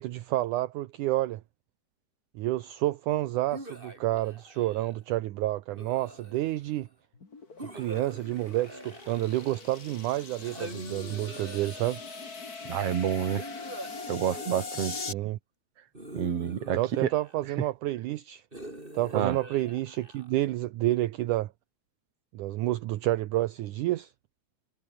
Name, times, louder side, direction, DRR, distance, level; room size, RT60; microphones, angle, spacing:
voice 1, 0.0-1.4 2.4-6.9 7.6-12.0 15.0-15.4 16.7-18.4 18.9-21.5 22.3-24.1, right 16 dB, 70° right, 2.1 m, -29 dB
sound 1, 3.5-5.0 5.7-6.7 7.6-9.8 10.4-12.2 13.4-15.1 15.9-17.6 18.5-20.5, right 1 dB, 15° right, 8.1 m, -45 dB
sound 2, 7.1-15.1, left 4 dB, 25° left, 2.8 m, -41 dB
voice 2, 12.7-13.4 14.1-15.1 16.1-17.1 19.1-19.4, right 9 dB, 50° right, 2.5 m, -29 dB
omnidirectional pair, 4.2 m